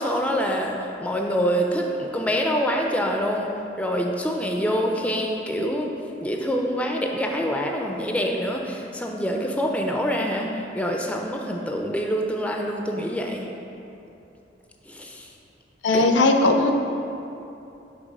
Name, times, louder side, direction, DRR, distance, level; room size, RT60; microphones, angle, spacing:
voice 1, 0.0-3.5 3.8-5.9 6.2-13.5 14.9-15.3 15.9-16.1, equal, 5° left, 1 dB, 0.3 m, -26 dB
voice 2, 15.8-16.7, left 2 dB, 70° left, 5 dB, 0.5 m, -18 dB
6.1 x 3.2 x 5.3 m, 2.8 s
head